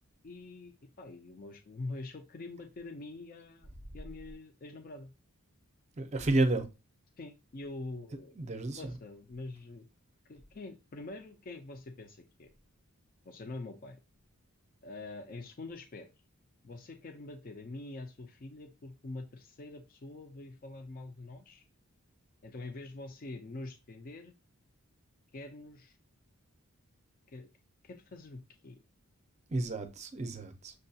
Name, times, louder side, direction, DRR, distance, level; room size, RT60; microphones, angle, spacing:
voice 1, 0.2-5.1 7.2-8.4 8.7-9.9 10.2-12.5 13.2-14.0 14.8-16.1 16.6-21.6 22.4-24.3 25.3-26.0 27.3-27.5 27.8-28.8, left 2 dB, 40° left, 0.4 m, -45 dB
voice 2, 6.0-6.7 8.4-8.8 29.5-30.7, right 2 dB, 30° right, 0.5 m, -31 dB
6.4 x 2.3 x 2.7 m
head